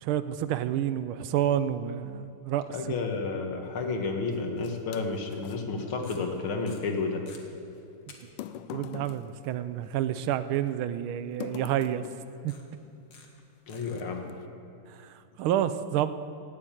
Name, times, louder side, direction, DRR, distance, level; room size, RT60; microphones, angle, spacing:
voice 1, 0.0-2.6 8.7-12.0 12.4-12.5 14.9-16.1, right 11 dB, 80° right, 13 dB, 1.4 m, -29 dB
voice 2, 2.7-7.3 13.7-14.3, left 4 dB, 70° left, 3 dB, 2.3 m, -31 dB
sound 1, 4.3-5.6 7.3-7.4 8.2-10.4 11.4-12.4 13.2-13.4 13.9-14.4, left 11 dB, 90° left, 1.5 m, -43 dB
sound 2, 6.0-6.4 6.7-7.4 8.1-8.2 8.5-8.6 11.5-11.6 12.5-12.7 13.1-13.4 13.7-14.0, left 5 dB, 50° left, 1.8 m, -51 dB
17.0 x 7.5 x 9.0 m, 2.7 s
omnidirectional pair, 2.4 m